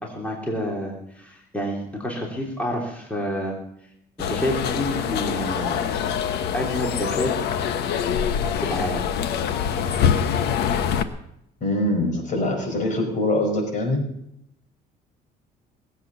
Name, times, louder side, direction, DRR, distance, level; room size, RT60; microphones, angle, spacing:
voice 1, 0.0-3.6 4.2-5.8 6.5-7.3 8.6-9.0, equal, 10° left, -1 dB, 3.2 m, -28 dB
sound 1, 4.2-11.0, left 8 dB, 75° left, 1.1 m, -24 dB
voice 2, 11.6-14.0, left 1 dB, 50° left, 2 dB, 5.0 m, -23 dB
19.5 x 8.3 x 6.9 m, 0.78 s
cardioid pair, 110°, 17 cm